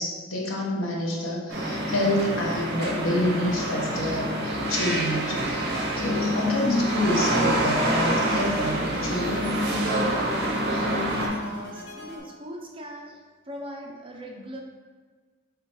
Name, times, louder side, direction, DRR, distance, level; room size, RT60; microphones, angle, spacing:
voice 1, 0.0-4.3 4.7-9.5, left 1 dB, 85° left, -2 dB, 0.9 m, -28 dB
sound 1, 1.5-11.3, right 1 dB, 55° right, 0.8 m, -26 dB
sound 2, 6.9-12.2, equal, 50° left, 0.8 m, -41 dB
voice 2, 11.3-13.2 13.5-14.6, equal, 25° right, 0 dB, 0.5 m, -40 dB
4.2 x 3.7 x 2.9 m, 1.4 s
head